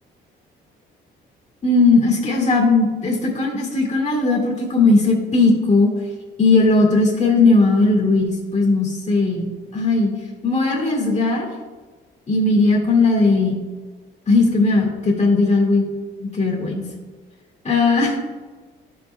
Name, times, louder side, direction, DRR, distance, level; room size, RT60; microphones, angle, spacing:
voice 1, 1.6-5.9 6.4-10.1 10.4-11.5 12.3-13.6 14.3-15.9 16.2-16.8 17.7-18.2, left 3 dB, 35° left, -2 dB, 1.9 m, -17 dB
10.5 x 5.4 x 2.2 m, 1.3 s
cardioid pair, 90°, 20 cm